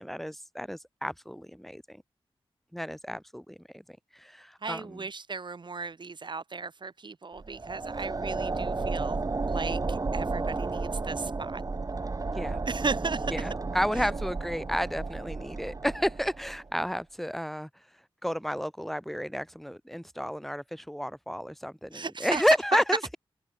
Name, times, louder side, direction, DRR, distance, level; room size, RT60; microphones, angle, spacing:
voice 1, 0.0-2.0 2.7-3.8 4.2-5.0 12.4-12.6 13.3-17.7 18.2-23.2, equal, ahead, 3.6 m, -31 dB
voice 2, 4.6-9.2 9.5-11.6 12.7-13.3 21.9-22.4 22.7-22.8, right 4 dB, 55° right, 2.9 m, -35 dB
sound 1, 7.4-16.7, right 3 dB, 40° right, 1.3 m, -33 dB
open air
wide cardioid pair, 70°, 9 cm